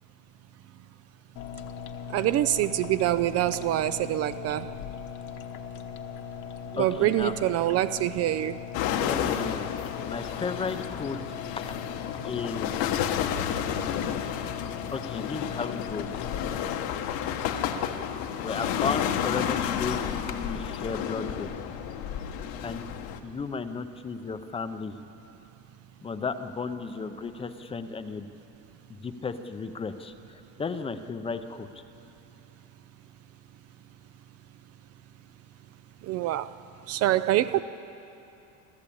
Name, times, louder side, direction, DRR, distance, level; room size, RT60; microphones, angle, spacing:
sound 1, 1.4-16.8, left 8 dB, 50° left, 1.2 m, -39 dB
voice 1, 2.1-4.7 6.7-8.6 36.0-36.5 36.9-37.6, right 14 dB, 40° right, 13 dB, 0.4 m, -25 dB
voice 2, 6.8-7.4 9.0-9.7 10.0-11.2 12.2-12.8 14.9-16.1 18.4-21.5 22.6-22.9 23.2-25.0 26.0-28.3 28.9-30.1 30.6-31.7 37.5-37.6, left 5 dB, 15° left, 9 dB, 0.6 m, -34 dB
sound 2, 8.7-23.2, left 9 dB, 70° left, 1.3 m, -31 dB
26.0 x 15.0 x 8.5 m, 2.8 s
cardioid pair, 170°, 37 cm